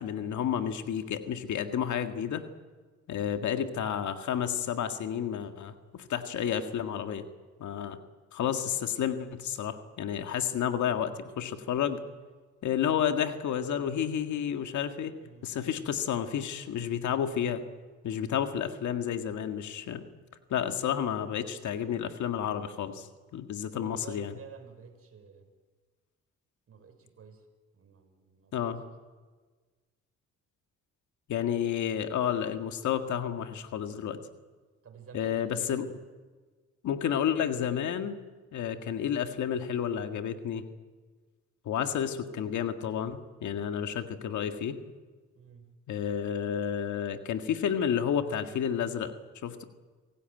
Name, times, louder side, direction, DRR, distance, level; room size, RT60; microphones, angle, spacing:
voice 1, 0.0-2.4 3.1-7.2 7.6-8.0 8.3-12.0 12.6-15.1 15.4-17.6 18.0-20.0 20.5-23.1 23.3-24.4 28.5-28.8 31.3-34.2 35.1-35.8 36.8-38.2 38.5-40.6 41.6-44.8 45.9-49.1 49.4-49.6, left 9 dB, 70° left, 7 dB, 1.8 m, -31 dB
voice 2, 15.2-15.5 23.7-25.5 26.7-27.4 27.7-28.7 34.8-36.0 45.3-45.7, right 6 dB, 50° right, 6 dB, 4.9 m, -51 dB
27.0 x 16.5 x 9.2 m, 1.4 s
cardioid pair, 90°, 30 cm